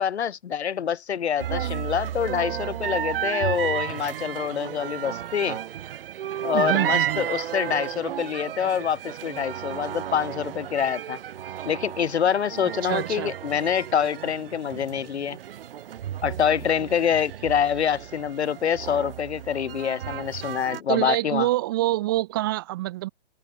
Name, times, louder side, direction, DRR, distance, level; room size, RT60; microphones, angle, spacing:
voice 1, 0.0-5.6 6.4-11.2 11.6-15.4 16.2-21.5, left 8 dB, 85° left, 0.8 m, -26 dB
sound 1, 1.4-20.8, right 10 dB, 60° right, 1.2 m, -33 dB
voice 2, 6.5-7.3 12.8-13.3 20.9-23.1, right 17 dB, 20° right, 0.5 m, -26 dB
hypercardioid pair, 140°, 33 cm